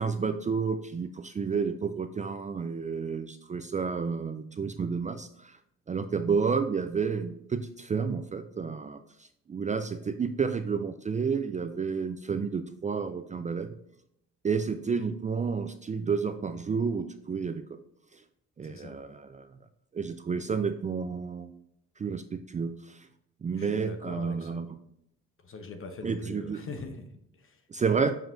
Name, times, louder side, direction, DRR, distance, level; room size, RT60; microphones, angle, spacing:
voice 1, 0.0-5.6 5.9-13.8 14.4-17.6 18.1-18.2 18.6-19.5 19.9-21.6 22.0-23.1 23.4-24.7 26.0-26.7 27.7-28.2, right 5 dB, 25° right, 9 dB, 0.4 m, -30 dB
voice 2, 18.6-19.0 23.5-24.7 25.4-27.6, left 3 dB, 45° left, 7 dB, 1.0 m, -42 dB
7.0 x 5.7 x 2.6 m, 0.75 s
cardioid pair, 90°, 30 cm